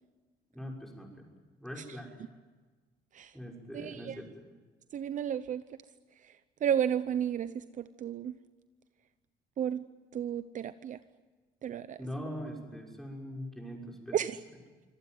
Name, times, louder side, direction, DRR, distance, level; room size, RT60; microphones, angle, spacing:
voice 1, 0.5-1.3 1.6-2.2 3.3-4.3 12.0-14.2, equal, ahead, 0 dB, 6.2 m, -42 dB
voice 2, 3.7-4.2 4.9-5.6 6.2-6.3 6.6-8.4 9.6-9.8 10.1-11.0 11.6-12.0 14.1-14.4, right 9 dB, 50° right, 13 dB, 0.8 m, -32 dB
25.5 x 18.0 x 9.4 m, 1.3 s
cardioid pair, 110°, 17 cm